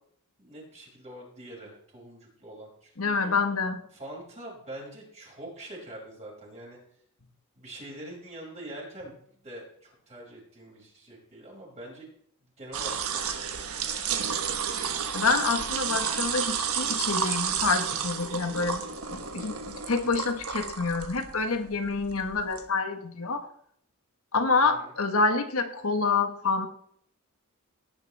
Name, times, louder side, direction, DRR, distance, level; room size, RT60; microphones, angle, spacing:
voice 1, 0.4-3.3 3.9-6.8 7.6-12.1 12.6-14.4 24.6-24.9, right 1 dB, 30° right, -3 dB, 5.8 m, -44 dB
voice 2, 3.0-3.8 15.1-18.8 19.1-23.5 24.3-26.7, left 4 dB, 70° left, 7 dB, 1.3 m, -27 dB
sound 1, 12.7-22.6, right 7 dB, 80° right, 1.3 m, -31 dB
17.5 x 9.8 x 3.4 m, 0.65 s
head